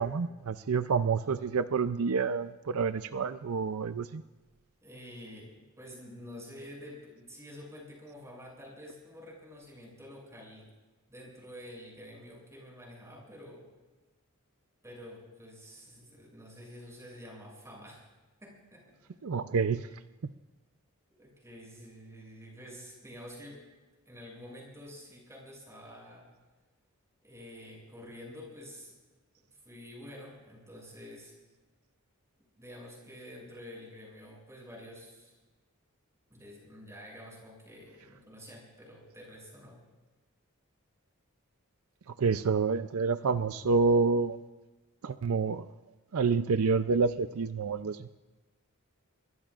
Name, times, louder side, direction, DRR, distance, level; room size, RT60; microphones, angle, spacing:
voice 1, 0.0-4.2 19.2-19.8 42.2-44.4 45.0-45.7 46.1-48.0, right 4 dB, 80° right, 12 dB, 0.5 m, -28 dB
voice 2, 4.8-10.7 11.1-13.7 14.8-18.0 18.4-19.1 21.2-23.6 24.1-26.3 27.2-28.9 29.6-31.3 32.6-35.3 36.3-39.8, left 1 dB, 15° right, -2 dB, 7.3 m, -48 dB
25.0 x 22.5 x 2.5 m, 1.2 s
head